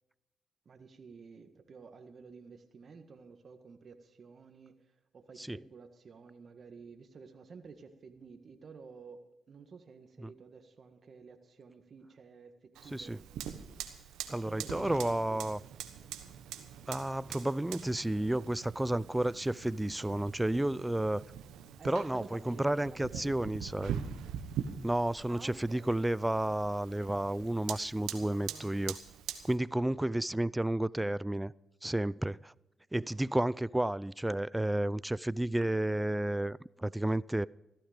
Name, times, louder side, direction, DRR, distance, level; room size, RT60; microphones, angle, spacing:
voice 1, 0.6-4.7 5.1-13.1 14.2-15.4 21.8-23.5 25.3-25.9 28.1-28.8 30.2-30.3, right 5 dB, 55° right, 1.7 m, -52 dB
Fire, 12.7-29.6, right 9 dB, 90° right, 1.2 m, -43 dB
voice 2, 14.3-15.6 16.9-21.2 21.8-24.0 24.8-29.0 29.4-31.5 31.8-32.5 32.9-37.5, right 1 dB, 10° right, 0.4 m, -31 dB
15.0 x 13.0 x 5.1 m
supercardioid pair, 55°, 0 cm